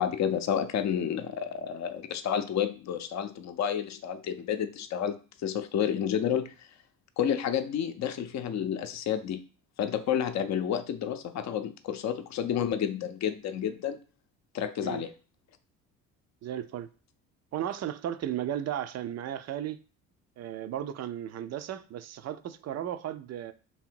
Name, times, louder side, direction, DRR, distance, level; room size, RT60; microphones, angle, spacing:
voice 1, 0.0-6.5 7.2-9.4 9.8-14.0 14.5-15.1, left 9 dB, 40° left, 0.7 m, -30 dB
voice 2, 16.4-16.9 17.5-19.8 20.4-23.5, right 11 dB, 40° right, 0.5 m, -35 dB
3.4 x 2.9 x 4.5 m
hypercardioid pair, 55°, 43 cm